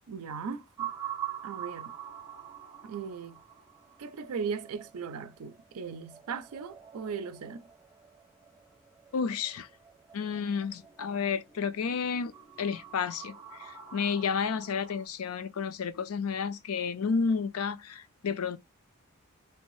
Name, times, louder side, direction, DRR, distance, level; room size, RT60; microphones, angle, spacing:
voice 1, 0.1-0.9 1.4-1.9 2.8-3.4 4.0-7.6, right 6 dB, 75° right, 0.5 m, -38 dB
sound 1, 0.8-15.1, right 10 dB, 15° right, 0.7 m, -45 dB
voice 2, 9.1-9.7 10.1-12.3 12.6-18.6, left 5 dB, 70° left, 0.4 m, -31 dB
3.3 x 2.6 x 3.1 m
head